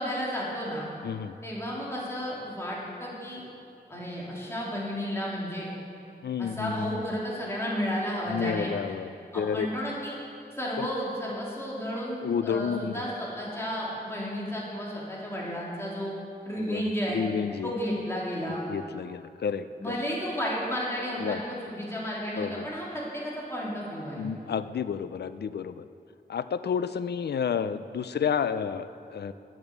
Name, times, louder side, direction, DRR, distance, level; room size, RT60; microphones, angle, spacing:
voice 1, 0.0-0.9 1.4-3.4 3.9-5.7 6.4-8.7 9.3-10.2 10.6-16.1 16.4-17.2 17.6-18.6 19.8-24.3, equal, 15° left, -6 dB, 3.0 m, -32 dB
voice 2, 1.0-1.3 6.2-6.9 8.3-9.7 10.8-10.9 12.2-13.0 16.7-16.8 17.1-17.7 18.7-20.0 21.2-21.4 22.4-22.7 24.1-25.8 26.3-29.3, left 7 dB, 70° left, 13 dB, 0.5 m, -30 dB
10.5 x 7.9 x 8.0 m, 2.6 s
wide cardioid pair, 130°, 18 cm